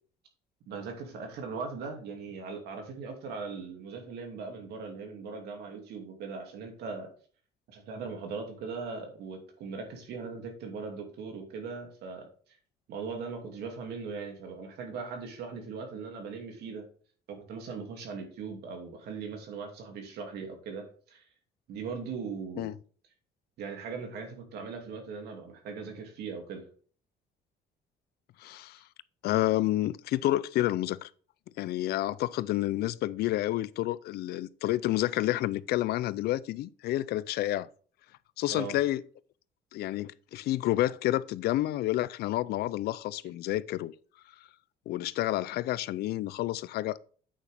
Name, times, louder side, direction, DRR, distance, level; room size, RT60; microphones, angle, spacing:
voice 1, 0.7-7.1 7.7-12.3 12.9-16.9 17.3-21.2 21.7-22.7 23.6-26.6 38.5-38.8, right 5 dB, 75° right, 2.6 m, -39 dB
voice 2, 28.4-28.8 29.2-31.1 31.6-37.7 38.4-39.0 39.7-43.9 44.9-47.0, left 15 dB, 70° left, 0.4 m, -29 dB
8.6 x 5.7 x 3.5 m
cardioid pair, 110°, 17 cm